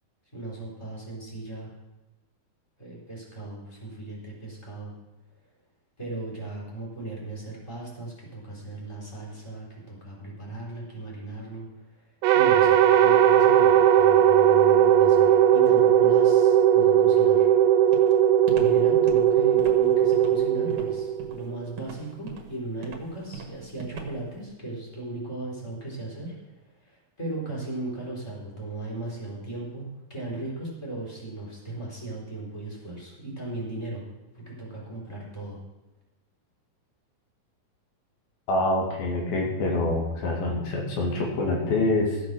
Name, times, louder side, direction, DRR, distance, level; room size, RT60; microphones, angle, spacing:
voice 1, 0.3-1.7 2.8-4.9 6.0-11.7 12.3-17.5 18.5-26.3 26.9-34.0 34.3-35.6, right 2 dB, 10° left, -5 dB, 4.1 m, -37 dB
sound 1, 12.2-21.5, right 10 dB, 80° right, 2.2 m, -19 dB
Walk footsteps, 17.9-24.4, right 6 dB, 60° right, 2.9 m, -40 dB
voice 2, 38.5-42.2, left 2 dB, 85° left, -1 dB, 4.0 m, -26 dB
14.5 x 8.3 x 6.2 m, 1.1 s
omnidirectional pair, 4.1 m